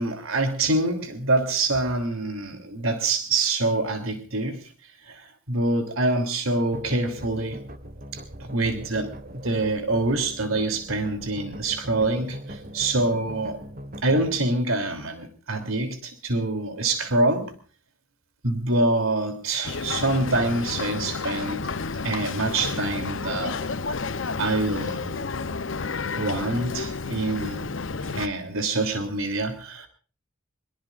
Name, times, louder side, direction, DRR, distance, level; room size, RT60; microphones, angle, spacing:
voice 1, 0.0-4.7 5.0-7.6 8.1-13.6 14.0-17.5 18.4-21.6 22.0-23.7 24.4-25.6 26.1-27.7 28.1-29.9, right 2 dB, 80° right, 7 dB, 3.1 m, -26 dB
sound 1, 6.7-14.4, equal, 45° right, 1.5 m, -41 dB
Boat Water vehicle, 19.6-28.3, left 4 dB, 65° left, 0.8 m, -31 dB
24.0 x 22.5 x 2.5 m, 0.40 s
head